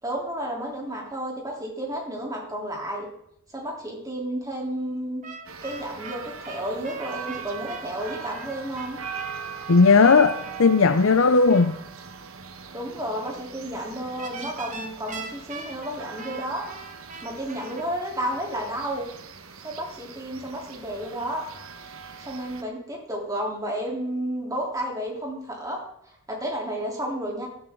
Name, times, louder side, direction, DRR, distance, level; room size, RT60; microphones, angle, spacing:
voice 1, 0.0-3.1 3.5-5.2 5.6-9.0 12.7-16.6 17.2-19.0 19.6-21.5 22.2-25.8 26.1-27.5, right 1 dB, 15° right, 3.6 m, -32 dB
sound 1, 5.2-11.7 14.2-17.8, right 4 dB, 35° right, 1.5 m, -42 dB
sound 2, 5.5-22.6, right 6 dB, 75° right, 1.3 m, -40 dB
voice 2, 9.7-11.8, left 4 dB, 65° left, 0.6 m, -17 dB
18.0 x 12.0 x 3.9 m
head